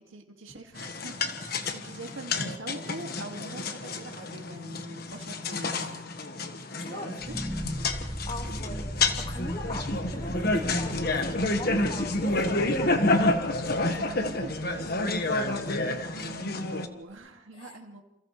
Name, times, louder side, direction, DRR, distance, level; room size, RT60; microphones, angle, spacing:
voice 1, 0.0-6.1 6.9-7.3 13.8-18.0, right 2 dB, 90° right, 2 dB, 2.1 m, -44 dB
sound 1, 0.8-16.9, left 2 dB, 50° left, 1.4 m, -29 dB
voice 2, 6.8-7.1 7.8-8.0 8.3-13.1 17.5-18.0, left 2 dB, 30° left, 4 dB, 1.8 m, -41 dB
sound 2, 7.2-16.3, equal, 5° right, 1.7 m, -39 dB
29.0 x 28.5 x 3.2 m, 0.91 s
head